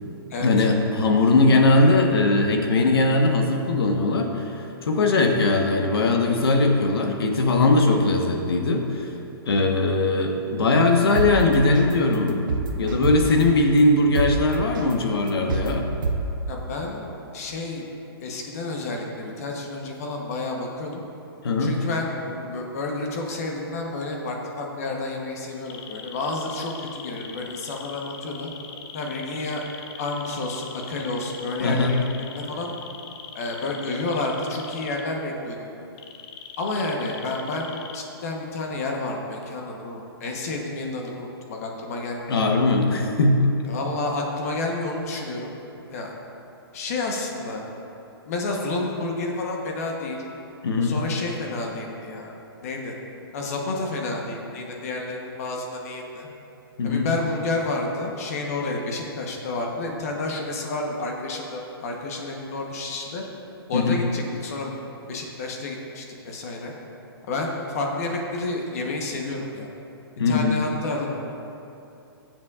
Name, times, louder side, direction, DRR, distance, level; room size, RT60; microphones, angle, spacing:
voice 1, 0.4-4.4 4.8-9.1 9.4-12.4 12.8-15.9 21.4-21.7 31.6-32.0 42.3-43.4 50.6-51.0 56.8-57.1 63.7-64.0 70.2-70.5, left 2 dB, 70° left, 3 dB, 1.2 m, -20 dB
sound 1, 11.1-11.3 11.7-11.9 12.3-13.4 13.8-13.9 14.1-14.3 14.7-14.9 15.3-15.7 16.0-16.2, right 4 dB, 55° right, 0.8 m, -25 dB
voice 2, 16.5-17.1 17.3-17.9 18.2-21.0 21.6-28.5 28.9-29.6 30.0-32.7 33.3-35.6 36.6-42.4 43.7-45.5 45.9-46.1 46.7-47.6 48.3-50.2 50.8-52.3 52.6-52.9 53.3-56.3 56.8-63.2 63.7-64.8 65.1-66.7 67.3-69.7 70.3-71.1, left 2 dB, 40° left, 0 dB, 1.0 m, -30 dB
sound 2, 25.7-35.0 36.0-38.0, left 7 dB, 15° left, 0.3 m, -41 dB
15.0 x 7.3 x 2.4 m, 2.8 s
hypercardioid pair, 165°, 13 cm